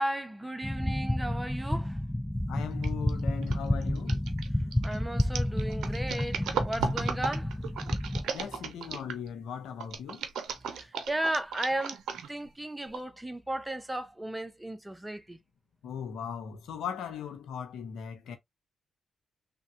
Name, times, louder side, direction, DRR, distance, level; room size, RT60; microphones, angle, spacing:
voice 1, 0.0-2.0 4.8-8.0 10.7-12.0 12.3-15.4, right 1 dB, 15° right, 0.7 m, -35 dB
sound 1, 0.6-8.2, left 1 dB, 5° left, 0.3 m, -30 dB
voice 2, 2.5-4.2 8.2-10.3 15.8-18.4, left 8 dB, 80° left, 0.7 m, -38 dB
sound 2, 2.8-3.1 3.4-9.3 9.8-12.5 12.9-13.0, right 7 dB, 80° right, 0.5 m, -36 dB
3.3 x 2.2 x 2.7 m
supercardioid pair, 50°, 0 cm